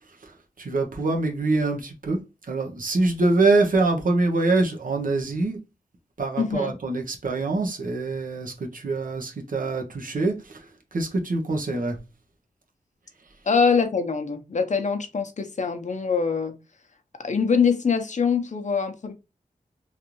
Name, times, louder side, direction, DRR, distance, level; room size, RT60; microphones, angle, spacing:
voice 1, 0.2-2.2 2.5-5.6 6.2-12.0, right 3 dB, 65° right, 0.9 m, -24 dB
voice 2, 6.4-6.7 13.5-16.6 17.2-19.1, left 5 dB, 55° left, 0.7 m, -23 dB
3.2 x 2.5 x 2.9 m
cardioid pair, 50°, 15 cm